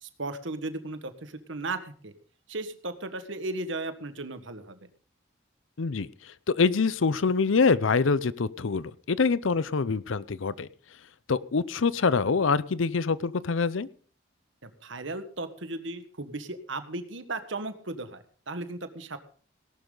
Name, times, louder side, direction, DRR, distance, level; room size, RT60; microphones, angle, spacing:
voice 1, 0.0-2.1 2.5-4.8 14.6-19.2, right 2 dB, 75° right, 10 dB, 1.5 m, -36 dB
voice 2, 5.8-6.1 6.6-10.7 11.3-13.9, left 4 dB, 85° left, 18 dB, 0.6 m, -25 dB
18.0 x 12.0 x 3.9 m, 0.43 s
head